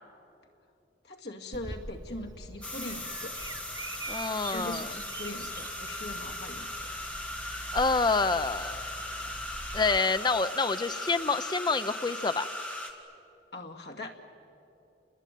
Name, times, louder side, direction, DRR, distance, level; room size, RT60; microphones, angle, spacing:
voice 1, 1.0-3.4 4.5-6.7 13.5-14.2, left 1 dB, 65° left, 2 dB, 2.3 m, -41 dB
Bird vocalization bird call bird song, 1.5-10.0, right 2 dB, 20° right, 0.7 m, -44 dB
sound 1, 2.6-12.9, left 1 dB, 10° left, 2.1 m, -38 dB
voice 2, 4.1-4.9 7.7-8.8 9.7-12.5, left 4 dB, 25° left, 11 dB, 0.6 m, -27 dB
29.5 x 21.0 x 9.3 m, 2.9 s
head